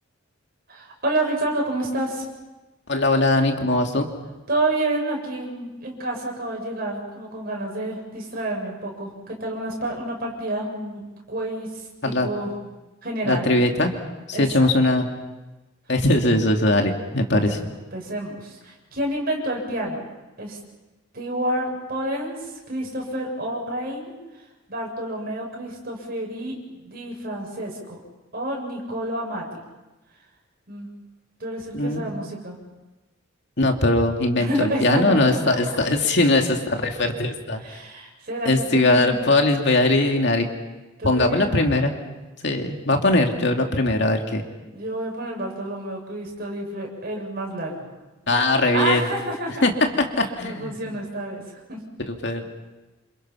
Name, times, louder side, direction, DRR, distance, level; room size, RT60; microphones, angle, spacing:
voice 1, 0.7-2.2 4.5-11.0 11.3-12.5 13.0-13.5 14.3-14.7 17.3-20.0 20.4-20.6 21.1-24.2 24.7-28.0 28.3-29.6 30.7-30.9 31.4-32.6 34.4-35.8 37.6-39.2 41.0-41.7 44.7-47.9 48.7-49.6 50.4-51.4 51.7-51.8, right 1 dB, 50° right, 0 dB, 7.4 m, -29 dB
voice 2, 2.9-4.1 12.0-12.3 13.2-13.9 14.3-15.1 15.9-17.6 31.7-32.1 33.6-37.6 38.5-40.5 41.0-42.0 42.4-44.4 48.3-49.0 49.6-49.7 50.2-50.7 52.1-52.4, left 2 dB, 60° left, 3 dB, 2.5 m, -20 dB
29.0 x 27.5 x 5.8 m, 1.1 s
head